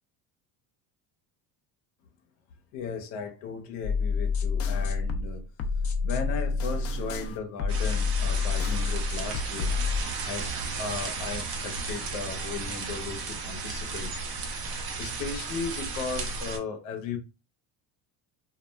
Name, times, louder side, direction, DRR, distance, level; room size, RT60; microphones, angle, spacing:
voice 1, 2.7-5.5 6.0-9.8 10.3-14.1 15.0-17.2, left 5 dB, 85° left, 0.7 m, -36 dB
sound 1, 3.8-10.0, left 5 dB, 35° left, 0.4 m, -28 dB
sound 2, 7.7-16.6, right 4 dB, 55° right, 0.8 m, -34 dB
2.3 x 2.2 x 3.2 m
cardioid pair, 115°, 42 cm